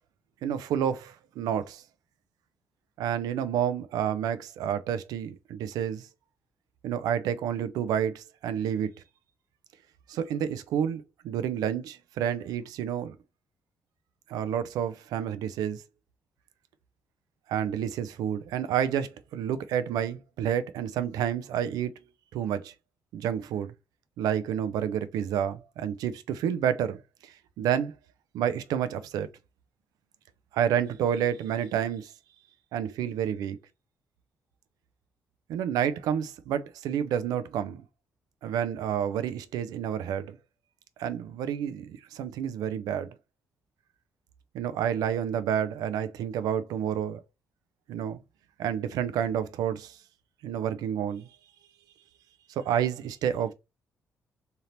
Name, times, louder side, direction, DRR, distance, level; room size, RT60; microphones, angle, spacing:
voice 1, 0.4-1.8 3.0-6.1 6.8-8.9 10.1-13.2 14.3-15.8 17.5-21.9 22.3-22.7 23.1-23.7 24.2-27.9 28.3-29.3 30.5-32.1 32.7-33.6 35.5-37.8 38.4-40.4 41.0-43.1 44.5-47.2 47.9-48.2 48.6-50.0 50.4-51.3 52.5-53.5, right 9 dB, 60° right, 0.4 m, -29 dB
3.7 x 2.8 x 2.9 m
figure-of-eight pair, 40°, 7 cm